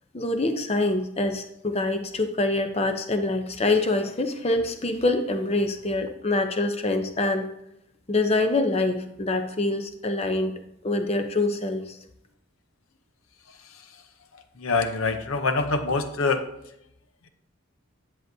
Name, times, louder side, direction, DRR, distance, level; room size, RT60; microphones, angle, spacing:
voice 1, 0.1-7.5 8.1-10.5 10.8-12.0, left 2 dB, 30° left, 7 dB, 0.7 m, -25 dB
voice 2, 14.6-16.5, left 3 dB, 75° left, 9 dB, 0.7 m, -25 dB
10.5 x 7.6 x 2.7 m, 0.80 s
head